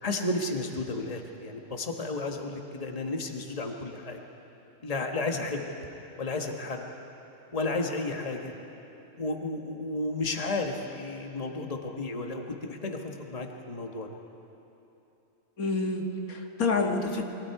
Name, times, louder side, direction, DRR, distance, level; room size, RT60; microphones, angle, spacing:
voice 1, 0.0-4.2 4.8-5.7 6.2-6.9 7.5-8.5 9.2-14.1, left 2 dB, 25° left, 2 dB, 1.5 m, -32 dB
voice 2, 15.6-17.2, left 3 dB, 85° left, 2 dB, 2.1 m, -28 dB
29.0 x 22.5 x 4.8 m, 3.0 s
omnidirectional pair, 1.5 m